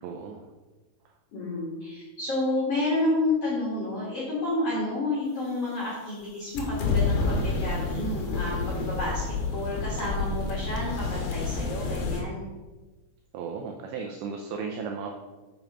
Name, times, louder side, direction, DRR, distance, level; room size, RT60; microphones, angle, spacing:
voice 1, 0.0-0.4 13.3-15.1, right 5 dB, 85° right, 2 dB, 2.5 m, -35 dB
voice 2, 1.3-9.2 9.5-12.5, left 2 dB, 50° left, -7 dB, 1.9 m, -30 dB
sound 1, 6.6-12.2, left 3 dB, 70° left, 2.5 m, -29 dB
7.2 x 5.9 x 5.7 m, 1.2 s
omnidirectional pair, 5.8 m